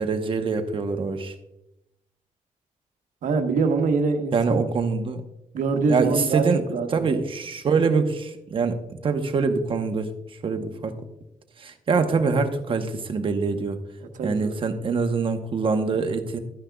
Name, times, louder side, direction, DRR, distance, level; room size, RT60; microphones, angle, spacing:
voice 1, 0.0-1.3 4.3-5.2 5.9-6.6 6.9-10.1 10.4-11.0 11.6-13.8 14.2-16.4, right 4 dB, 40° right, 7 dB, 0.9 m, -24 dB
voice 2, 3.2-4.6 5.5-6.5 6.7-7.1 14.1-14.6, right 4 dB, 70° right, 6 dB, 1.1 m, -24 dB
12.0 x 9.9 x 2.3 m, 0.89 s
cardioid pair, 140°, 14 cm